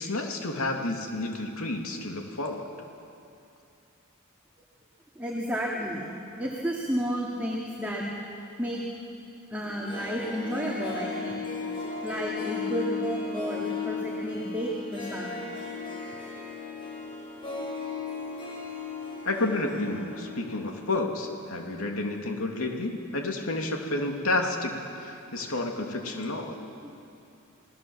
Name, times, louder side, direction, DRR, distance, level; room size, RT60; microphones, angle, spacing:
voice 1, 0.0-2.7 19.2-26.6, left 2 dB, 80° left, 2 dB, 2.7 m, -30 dB
voice 2, 5.2-6.1 6.3-8.0 8.6-8.8 9.5-11.4 12.0-15.3 26.8-26.9, equal, 5° right, -4 dB, 2.3 m, -32 dB
Harp, 9.7-20.7 21.0-21.1, left 5 dB, 25° left, 5.9 m, -36 dB
28.0 x 19.5 x 7.2 m, 2.7 s
head